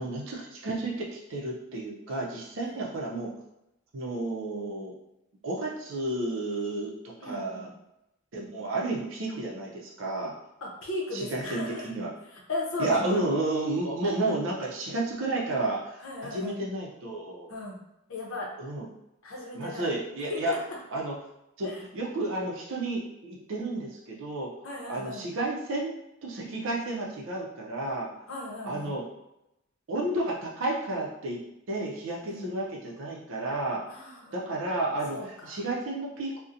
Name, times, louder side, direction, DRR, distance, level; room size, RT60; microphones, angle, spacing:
voice 1, 0.0-3.3 3.9-4.9 5.4-7.7 8.3-10.3 11.1-12.1 12.8-16.0 16.3-17.5 18.6-18.9 19.5-20.5 20.9-21.1 21.6-21.7 21.9-24.5 24.9-25.9 26.2-28.2 28.6-29.0 29.9-31.4 31.7-34.0 34.3-36.4, right 2 dB, 60° right, -2 dB, 0.5 m, -31 dB
voice 2, 7.2-7.7 10.6-11.9 12.2-13.2 16.0-16.5 17.5-17.8 18.1-18.5 19.2-19.9 20.3-20.6 21.6-21.8 24.6-25.2 28.3-28.9 32.2-32.5 33.9-34.4 35.1-35.6, left 2 dB, 65° left, -2 dB, 0.7 m, -36 dB
2.7 x 2.1 x 2.4 m, 0.86 s
head